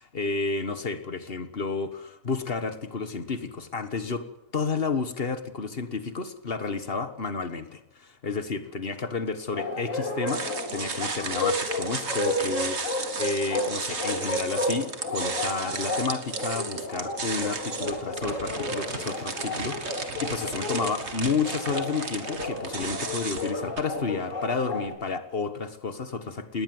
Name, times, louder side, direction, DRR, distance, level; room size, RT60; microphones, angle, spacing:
voice 1, 0.0-4.3 4.5-26.6, left 4 dB, 45° left, 11 dB, 1.7 m, -31 dB
Bark, 9.5-24.9, left 1 dB, 65° left, 3.8 m, -32 dB
sound 1, 10.3-23.8, right 4 dB, 50° right, 2.2 m, -34 dB
19.5 x 19.0 x 7.9 m, 0.81 s
omnidirectional pair, 1.4 m